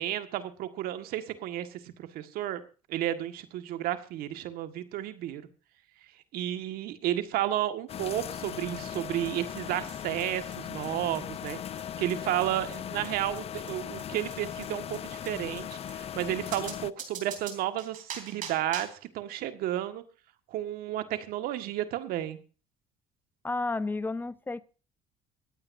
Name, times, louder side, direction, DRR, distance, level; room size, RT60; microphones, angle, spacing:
voice 1, 0.0-2.6 2.9-5.4 6.3-20.0 20.5-22.4, right 12 dB, 75° right, 10 dB, 1.7 m, -32 dB
sound 1, 7.9-16.9, left 9 dB, 40° left, 0.5 m, -38 dB
sound 2, 8.9-9.0 9.2-9.3 9.6-9.7 9.9-10.0 10.2-10.3 10.5-10.6 10.8-10.9 11.1-11.2 11.5-11.6 11.8-11.9 12.1-12.2 12.4-12.5 12.7-12.8 13.0-13.1 13.4-13.5 13.7-13.8 14.0-14.1 14.3-14.4 14.6-14.7 14.9-15.0 15.2-15.3 15.6-15.7 15.9-16.0 16.2-16.3 16.5-19.0, right 7 dB, 55° right, 3.7 m, -42 dB
voice 2, 23.4-24.6, left 3 dB, 10° left, 14 dB, 0.8 m, -31 dB
25.5 x 8.9 x 2.7 m, 0.36 s
cardioid pair, 100°, 16 cm